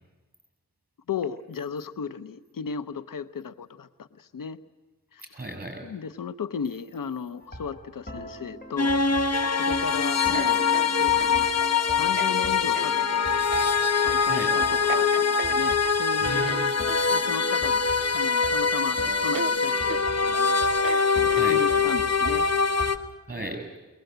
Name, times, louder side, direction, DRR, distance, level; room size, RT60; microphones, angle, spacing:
voice 1, 1.1-4.6 5.1-5.2 5.8-9.0 9.6-10.6 11.0-11.5 11.9-13.4 13.9-16.7 17.1-22.4, left 6 dB, 70° left, 13 dB, 0.8 m, -35 dB
voice 2, 5.2-5.9 14.3-14.5 16.2-16.7 21.3-21.6 23.3-23.7, right 1 dB, 25° right, 3 dB, 7.3 m, -35 dB
sound 1, 7.4-22.9, equal, 25° left, 6.8 m, -42 dB
sound 2, 8.8-23.0, left 5 dB, 50° left, 1.2 m, -23 dB
sound 3, 9.1-9.7 10.3-11.4 12.1-12.4 12.7-12.9 13.6-13.8 14.2-14.4 14.9-16.0 16.4-17.1 18.0-18.5 18.8-18.9 19.3-19.6 19.9-20.1 20.7-21.8, right 8 dB, 70° right, 0.7 m, -37 dB
22.5 x 19.0 x 8.0 m, 1.2 s
cardioid pair, 50°, 34 cm